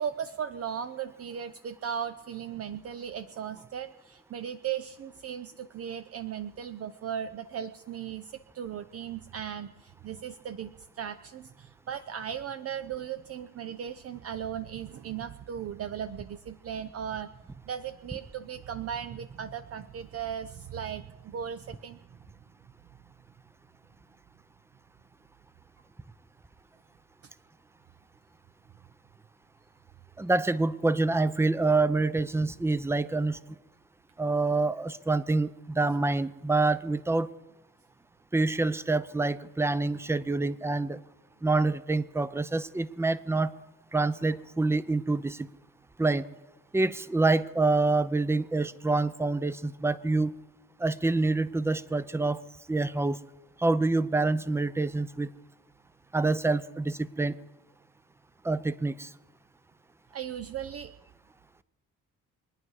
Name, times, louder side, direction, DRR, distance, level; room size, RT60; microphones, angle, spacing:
voice 1, 0.0-17.3 17.7-22.0 60.1-60.9, right 8 dB, 50° right, 10 dB, 0.6 m, -37 dB
voice 2, 30.2-33.4 34.2-37.3 38.3-41.0 41.4-43.5 43.9-45.4 46.0-46.2 46.7-50.3 50.8-52.4 52.7-53.2 53.6-55.3 56.1-57.3 58.4-59.1, right 3 dB, 10° right, 15 dB, 0.6 m, -26 dB
23.5 x 9.7 x 4.8 m, 1.0 s
cardioid pair, 90°, 30 cm